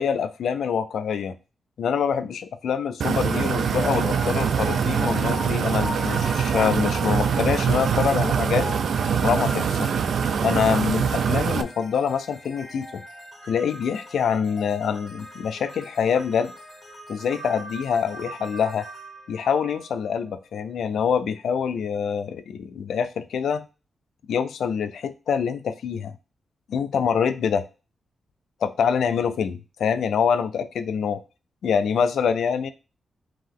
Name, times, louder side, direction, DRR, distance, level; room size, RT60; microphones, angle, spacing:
voice 1, 0.0-1.4 1.8-8.7 9.2-9.9 10.4-13.0 13.5-16.5 17.1-18.9 19.3-23.6 24.3-26.2 26.7-27.7 28.6-31.2 31.6-32.7, left 7 dB, 85° left, 10 dB, 0.4 m, -25 dB
sound 1, 3.0-11.6, right 7 dB, 65° right, 0.3 m, -23 dB
sound 2, 3.2-20.3, left 2 dB, 20° left, 1.6 m, -40 dB
3.7 x 2.9 x 3.6 m, 0.31 s
wide cardioid pair, 155°, 0 cm